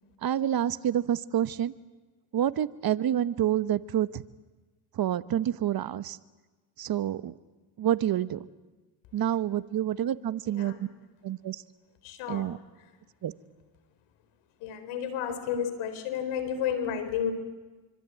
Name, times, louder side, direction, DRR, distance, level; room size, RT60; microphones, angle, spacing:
voice 1, 0.2-1.7 2.3-4.2 4.9-6.2 6.8-7.3 7.8-8.4 9.1-10.9 11.2-11.6 12.3-12.6 13.2-13.3, right 11 dB, 45° right, 14 dB, 1.3 m, -28 dB
voice 2, 12.0-12.5 14.6-17.3, left 8 dB, 75° left, 11 dB, 4.4 m, -31 dB
25.5 x 25.0 x 9.3 m, 1.2 s
supercardioid pair, 80°, 49 cm